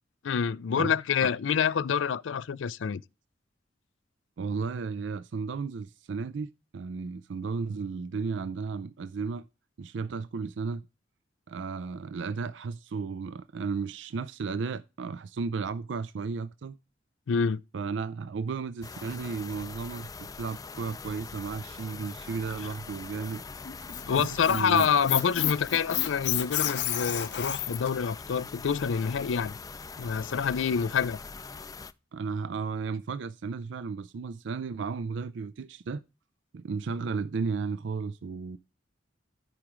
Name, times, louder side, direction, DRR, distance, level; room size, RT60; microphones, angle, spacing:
voice 1, 0.2-3.0 17.3-17.6 24.1-29.5 30.0-31.2, left 7 dB, 85° left, 0.4 m, -27 dB
voice 2, 4.4-9.5 9.8-10.8 11.5-16.8 17.7-23.4 24.1-24.9 32.1-36.0 36.5-38.6, right 5 dB, 75° right, 0.4 m, -34 dB
sound 1, 18.8-31.9, left 4 dB, 20° left, 0.4 m, -43 dB
Squeak, 23.7-27.9, left 11 dB, 65° left, 0.8 m, -30 dB
13.5 x 4.9 x 3.0 m
head